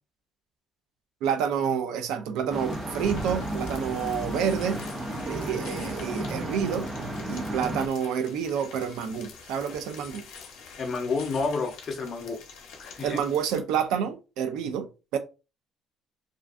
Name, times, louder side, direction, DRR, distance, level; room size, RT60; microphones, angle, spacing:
voice 1, 1.2-4.8 5.3-6.9 7.3-10.2 13.0-15.2, right 7 dB, 85° right, 0.4 m, -28 dB
sound 1, 2.5-13.6, left 5 dB, 85° left, 0.6 m, -47 dB
sound 2, 2.5-7.9, right 1 dB, 15° right, 0.4 m, -33 dB
voice 2, 10.8-12.4 12.8-13.2, left 4 dB, 40° left, 0.6 m, -30 dB
2.5 x 2.2 x 2.4 m
cardioid pair, 135°, 0 cm